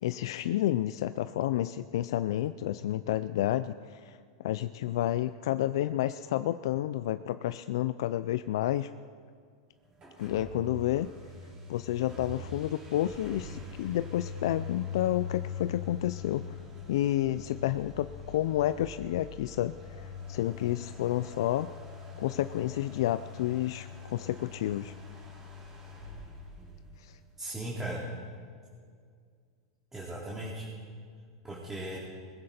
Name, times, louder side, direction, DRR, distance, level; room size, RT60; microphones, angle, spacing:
voice 1, 0.0-8.9 10.2-11.1 11.7-16.4 16.9-21.7 22.2-24.9 27.0-27.2, left 13 dB, 75° left, 12 dB, 0.4 m, -30 dB
sound 1, 9.9-27.4, left 5 dB, 30° right, 5.7 m, -43 dB
voice 2, 27.4-28.0 29.9-30.7 31.4-32.0, right 1 dB, 10° right, -6 dB, 2.8 m, -37 dB
20.5 x 15.5 x 4.3 m, 2.1 s
supercardioid pair, 130°, 3 cm